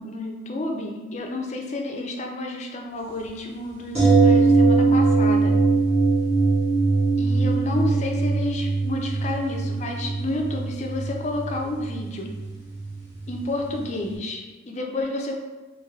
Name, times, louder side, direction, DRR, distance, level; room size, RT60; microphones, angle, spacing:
voice 1, 0.0-5.6 7.2-12.3 13.3-15.4, left 2 dB, 35° left, 2 dB, 0.4 m, -30 dB
sound 1, 3.9-13.8 14.1-14.2, right 3 dB, 30° right, 1.2 m, -21 dB
3.6 x 2.5 x 3.2 m, 1.2 s
head